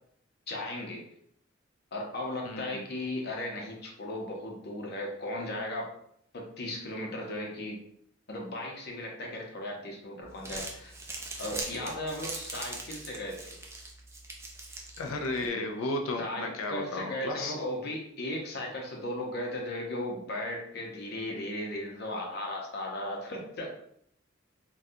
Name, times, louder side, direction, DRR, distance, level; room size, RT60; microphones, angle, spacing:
voice 1, 0.5-1.0 1.9-6.0 6.3-7.8 8.3-10.9 11.4-13.6 16.2-23.7, left 1 dB, 55° left, 0 dB, 0.7 m, -36 dB
voice 2, 2.4-2.8 15.0-17.5, left 2 dB, 90° left, 4 dB, 0.4 m, -34 dB
Crumpling crinkling, 10.2-15.5, right 2 dB, 15° right, 0.4 m, -41 dB
3.6 x 2.3 x 2.7 m, 0.69 s
head